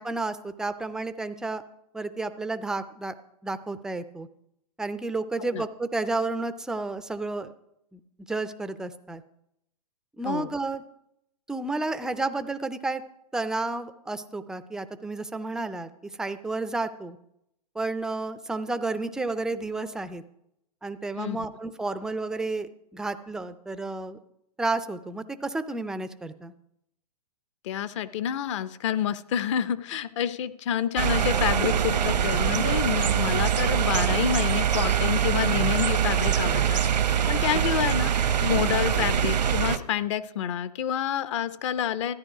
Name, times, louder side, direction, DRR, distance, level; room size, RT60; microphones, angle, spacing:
voice 1, 0.0-1.6 1.9-3.1 3.4-4.3 4.8-7.5 7.9-8.0 8.3-9.2 10.2-10.8 11.5-13.0 13.3-15.9 16.2-17.2 17.8-20.2 20.8-24.2 24.6-26.5, right 3 dB, 5° right, 11 dB, 0.3 m, -31 dB
voice 2, 27.6-42.1, left 10 dB, 45° left, 15 dB, 0.6 m, -28 dB
sound 1, 31.0-39.8, right 9 dB, 85° right, 0.9 m, -24 dB
13.5 x 9.7 x 4.9 m, 0.79 s
hypercardioid pair, 130°, 21 cm